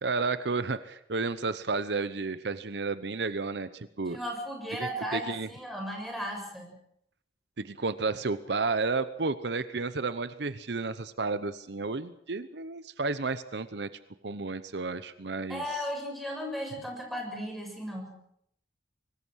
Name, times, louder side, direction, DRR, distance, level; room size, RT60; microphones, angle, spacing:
voice 1, 0.0-4.2 4.7-5.5 7.6-13.9 14.2-15.6, right 4 dB, 65° right, 13 dB, 0.9 m, -32 dB
voice 2, 4.1-6.8 15.5-18.2, equal, ahead, 1 dB, 6.9 m, -36 dB
24.5 x 19.5 x 6.4 m, 0.72 s
head